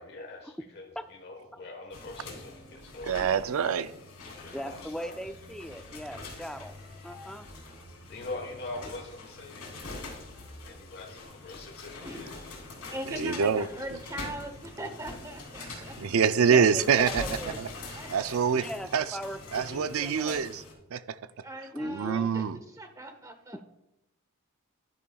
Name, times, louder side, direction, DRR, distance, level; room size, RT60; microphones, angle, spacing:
voice 1, 0.0-3.1 4.4-5.3 8.1-9.7 10.6-12.3, left 2 dB, 45° left, 1.2 m, -43 dB
sound 1, 1.9-20.7, left 2 dB, 85° left, 3.1 m, -44 dB
voice 2, 3.1-3.9 13.1-13.7 16.0-17.2 17.6-17.7 18.1-19.2 19.5-20.6 20.9-21.2 21.8-22.6, right 6 dB, 70° right, 0.4 m, -25 dB
voice 3, 4.5-6.7 7.0-7.5 16.5-17.6 18.5-20.4 21.7-22.3 23.5-23.6, equal, ahead, 0.3 m, -39 dB
voice 4, 12.0-12.5 12.8-16.1 16.6-17.0 17.7-19.0 20.0-20.1 21.4-23.6, right 1 dB, 15° right, 0.9 m, -42 dB
11.5 x 10.0 x 2.3 m
head